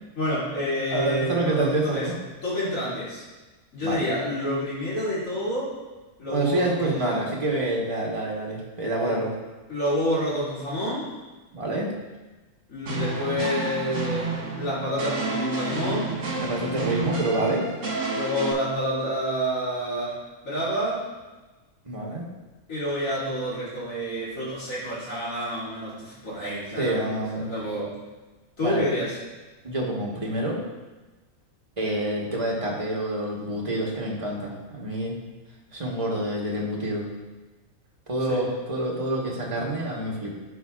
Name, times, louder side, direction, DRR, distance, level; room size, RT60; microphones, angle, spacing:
voice 1, 0.1-2.1 2.4-3.2 3.7-5.7 6.2-7.2 9.0-9.1 9.7-11.1 12.7-16.2 16.6-16.7 18.1-20.2 20.4-21.1 22.7-27.9 28.6-29.1 38.3-38.4, equal, 65° left, -10 dB, 2.9 m, -28 dB
voice 2, 0.9-2.2 3.8-4.1 6.3-9.3 11.5-11.9 16.4-17.7 21.8-22.3 26.8-27.5 28.6-28.9 29.6-30.6 31.8-35.2 35.7-37.1 38.1-40.3, right 1 dB, 25° right, -3 dB, 1.2 m, -27 dB
sound 1, 12.9-18.5, right 3 dB, 60° right, 1.5 m, -30 dB
13.0 x 4.7 x 2.4 m, 1.2 s
omnidirectional pair, 1.5 m